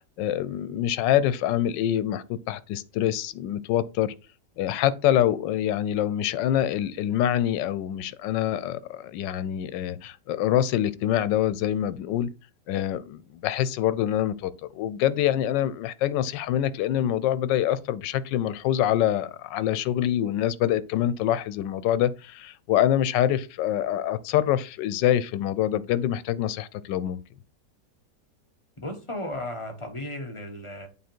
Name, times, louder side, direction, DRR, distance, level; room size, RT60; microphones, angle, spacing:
voice 1, 0.0-4.1 4.6-12.3 12.7-27.2, left 11 dB, 85° left, 1.3 m, -25 dB
voice 2, 28.8-30.9, left 1 dB, 20° left, 1.1 m, -35 dB
8.5 x 3.7 x 4.4 m
omnidirectional pair, 1.9 m